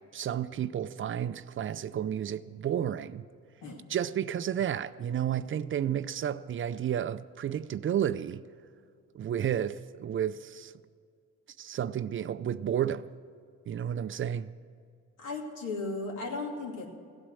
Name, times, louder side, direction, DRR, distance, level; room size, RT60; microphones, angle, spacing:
voice 1, 0.0-3.3 3.9-8.4 9.1-10.7 11.6-13.1 13.7-14.5, right 9 dB, 45° right, 0.4 m, -31 dB
voice 2, 15.2-16.9, left 3 dB, 80° left, 2.5 m, -36 dB
16.0 x 8.9 x 6.4 m
cardioid pair, 90°, 30 cm